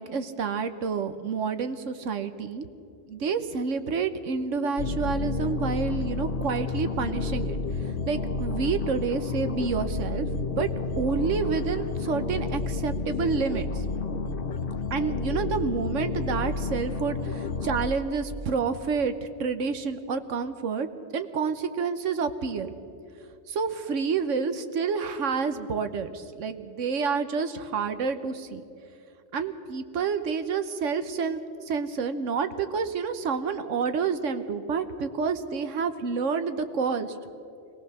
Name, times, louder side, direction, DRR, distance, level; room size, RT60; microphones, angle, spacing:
voice 1, 0.0-2.7 3.1-10.7 11.0-13.8 14.9-20.9 21.1-22.7 23.5-28.6 29.3-37.2, right 5 dB, 80° right, 10 dB, 1.3 m, -29 dB
sound 1, 4.8-17.9, left 3 dB, 50° left, 1.0 m, -30 dB
22.0 x 18.0 x 6.7 m, 2.5 s
omnidirectional pair, 1.3 m